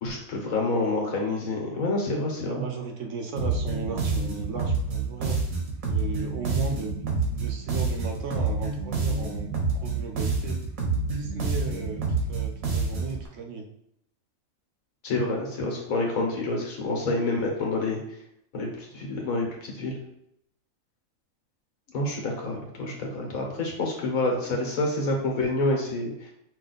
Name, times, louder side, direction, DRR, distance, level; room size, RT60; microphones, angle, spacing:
voice 1, 0.0-2.6 15.0-18.0 18.5-20.0 21.9-26.3, left 2 dB, 85° left, 0 dB, 1.5 m, -28 dB
voice 2, 0.5-1.2 2.4-5.4 5.9-10.6 11.1-13.7, right 4 dB, 65° right, 3 dB, 1.0 m, -36 dB
sound 1, 3.4-13.2, right 4 dB, 85° right, 1.4 m, -28 dB
5.4 x 2.5 x 4.0 m, 0.76 s
omnidirectional pair, 1.4 m